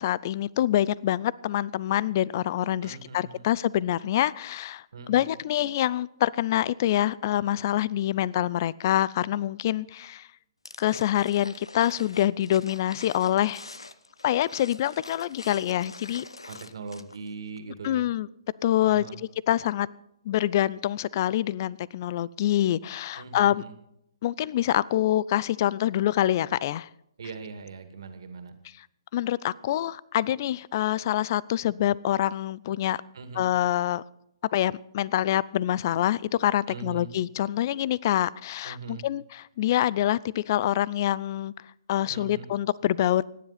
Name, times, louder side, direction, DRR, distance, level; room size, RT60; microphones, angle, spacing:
voice 1, 0.0-10.3 10.8-13.6 14.2-16.3 17.8-18.3 18.6-19.1 19.5-19.9 20.3-23.6 24.2-26.9 29.1-33.0 33.4-34.0 34.5-41.5 41.9-43.2, left 12 dB, 40° left, 23 dB, 0.4 m, -26 dB
voice 2, 2.8-3.5 4.9-5.3 16.5-18.1 18.8-19.2 23.1-23.8 27.2-28.5 33.1-33.5 36.7-37.1 38.6-39.1 42.1-42.5, right 5 dB, 60° right, 7 dB, 2.2 m, -40 dB
sound 1, 10.6-17.3 17.6-17.7, left 3 dB, 85° left, 0.9 m, -45 dB
25.0 x 10.5 x 4.2 m, 0.79 s
figure-of-eight pair, 130°, 3 cm